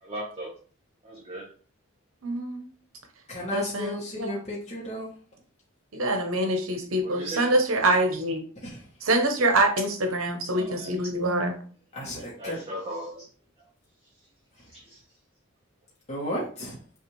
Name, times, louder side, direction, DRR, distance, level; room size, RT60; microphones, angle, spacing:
voice 1, 0.0-0.5 1.0-1.4 7.0-7.5 10.5-11.2 12.2-13.3 14.6-15.0, equal, 30° right, -6 dB, 1.1 m, -38 dB
voice 2, 2.2-2.7 3.5-4.3 5.9-8.4 9.0-11.6, right 1 dB, 80° right, 6 dB, 0.9 m, -25 dB
voice 3, 3.3-5.1 8.6-8.8 11.9-12.6 16.1-16.8, equal, 30° left, -5 dB, 1.0 m, -33 dB
5.6 x 2.5 x 3.1 m, 0.42 s
head